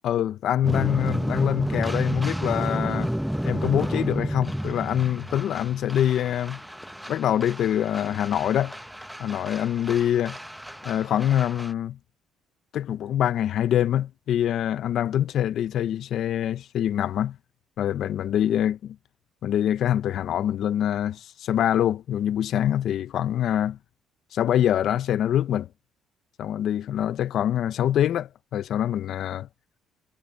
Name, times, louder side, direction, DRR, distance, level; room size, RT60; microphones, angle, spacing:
voice 1, 0.0-3.1 3.4-6.6 7.1-8.7 9.2-10.4 10.8-12.0 12.7-17.4 17.8-19.0 19.4-23.8 24.3-25.7 26.4-29.5, left 11 dB, 65° left, 0.8 m, -25 dB
sound 1, 0.6-11.7, equal, ahead, 1.0 m, -31 dB
cardioid pair, 90°, 0 cm